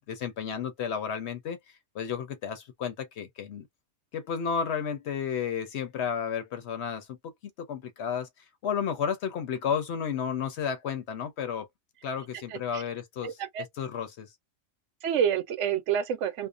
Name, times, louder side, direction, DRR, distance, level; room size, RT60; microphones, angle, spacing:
voice 1, 0.1-1.6 1.9-3.7 4.1-8.3 8.6-11.7 12.0-13.4 13.8-14.3, left 7 dB, 60° left, 0.9 m, -32 dB
voice 2, 12.5-12.8 13.2-13.6 15.0-16.5, right 8 dB, 70° right, 0.8 m, -28 dB
2.5 x 2.1 x 2.4 m
omnidirectional pair, 1.3 m